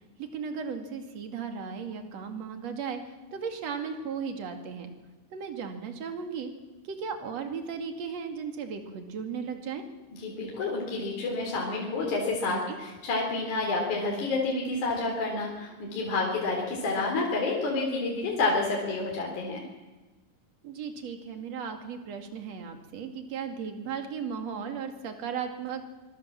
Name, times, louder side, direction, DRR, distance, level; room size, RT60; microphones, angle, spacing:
voice 1, 0.2-4.9 5.3-6.5 6.8-9.8 12.5-12.8 16.2-16.4 19.4-19.7 20.6-25.8, right 6 dB, 45° right, 5 dB, 2.4 m, -36 dB
voice 2, 10.2-19.6, left 3 dB, 40° left, -1 dB, 4.7 m, -29 dB
25.5 x 23.0 x 7.5 m, 1.2 s
omnidirectional pair, 5.9 m